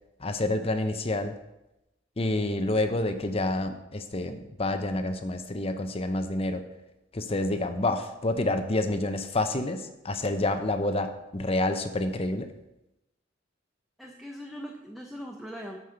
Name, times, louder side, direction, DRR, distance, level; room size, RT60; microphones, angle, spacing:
voice 1, 0.2-1.3 2.2-6.6 7.1-12.5, left 2 dB, 35° left, 8 dB, 0.7 m, -28 dB
voice 2, 14.0-15.8, equal, ahead, 0 dB, 0.7 m, -40 dB
7.8 x 5.5 x 6.8 m, 0.93 s
head